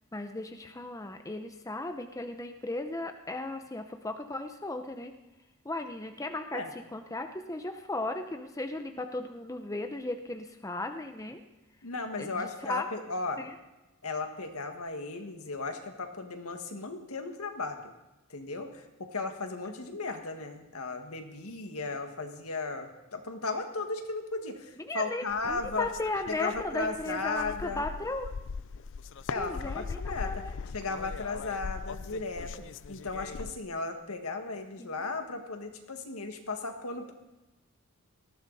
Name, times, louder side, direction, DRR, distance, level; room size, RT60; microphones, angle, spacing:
voice 1, 0.1-5.1 5.6-11.4 12.2-12.9 13.4-13.5 24.8-28.3 29.4-30.5 34.8-35.0, left 2 dB, 15° left, 6 dB, 0.7 m, -36 dB
voice 2, 11.8-13.4 14.0-17.9 18.3-18.9 19.1-25.9 26.3-27.8 29.3-30.3 30.7-32.5 32.9-37.1, left 3 dB, 75° left, 5 dB, 1.9 m, -35 dB
sound 1, 25.3-33.6, left 5 dB, 60° left, 0.5 m, -40 dB
19.0 x 15.0 x 4.2 m, 1.0 s
head